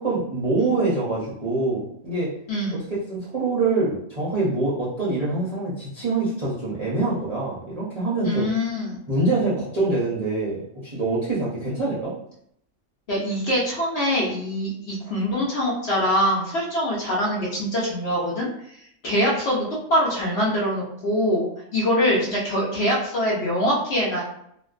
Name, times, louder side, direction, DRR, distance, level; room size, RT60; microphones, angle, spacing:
voice 1, 0.0-2.3 2.7-8.5 9.1-12.1, right 3 dB, 45° right, -10 dB, 0.5 m, -25 dB
voice 2, 2.5-2.8 8.2-9.0 13.1-18.5 19.0-24.2, equal, 60° left, -4 dB, 0.8 m, -23 dB
2.4 x 2.2 x 2.4 m, 0.70 s
omnidirectional pair, 1.5 m